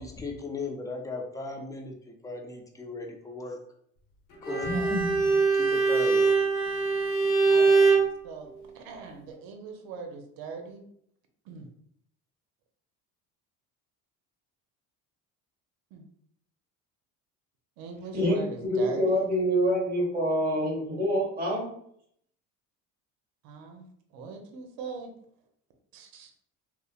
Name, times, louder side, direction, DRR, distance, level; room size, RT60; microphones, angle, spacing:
voice 1, 0.0-3.6 4.4-5.3 5.5-6.3, left 2 dB, 10° left, 2 dB, 0.4 m, -36 dB
Bowed string instrument, 4.4-8.1, right 4 dB, 60° left, 0.9 m, -23 dB
voice 2, 4.5-5.0 7.5-8.0 8.2-10.8 11.5-11.7 15.9-16.0 17.8-19.3 23.4-23.8 24.1-25.1 25.9-26.3, right 5 dB, 75° right, 4 dB, 0.6 m, -41 dB
voice 3, 18.1-21.7, equal, 25° right, -2 dB, 1.2 m, -26 dB
2.7 x 2.0 x 2.4 m, 0.68 s
supercardioid pair, 95°, 36 cm